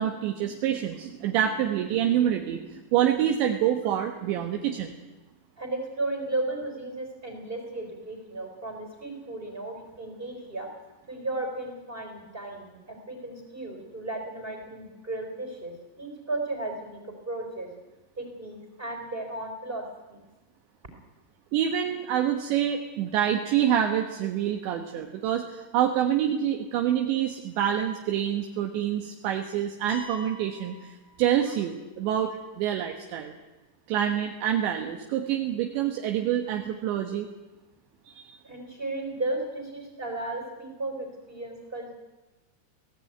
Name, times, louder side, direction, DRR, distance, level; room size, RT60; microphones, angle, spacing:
voice 1, 0.0-5.0 21.5-32.3 32.6-33.3 33.9-37.3 38.1-38.4, right 10 dB, 75° right, 4 dB, 3.4 m, -27 dB
voice 2, 5.6-10.7 11.1-17.7 18.2-20.2 38.4-41.9, right 2 dB, 10° right, 3 dB, 3.8 m, -35 dB
sound 1, 29.9-31.8, left 2 dB, 60° left, 5.6 m, -46 dB
23.5 x 17.0 x 9.3 m, 1.2 s
omnidirectional pair, 5.4 m